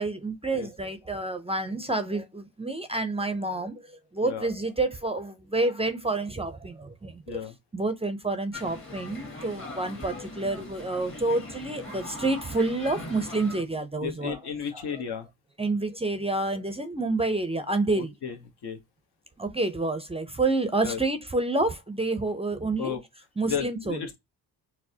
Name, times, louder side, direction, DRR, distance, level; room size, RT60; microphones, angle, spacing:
voice 1, 0.0-7.4 7.7-14.4 14.7-14.8 15.6-18.1 19.4-23.0 23.4-24.0, right 2 dB, 15° right, 0.5 m, -28 dB
sound 1, 8.5-13.6, left 2 dB, 30° left, 1.4 m, -40 dB
voice 2, 14.0-15.3 18.0-18.4 18.6-18.8 20.8-21.0 22.8-23.0 23.5-24.2, left 7 dB, 70° left, 1.0 m, -33 dB
4.5 x 2.0 x 2.7 m
cardioid pair, 85°, 41 cm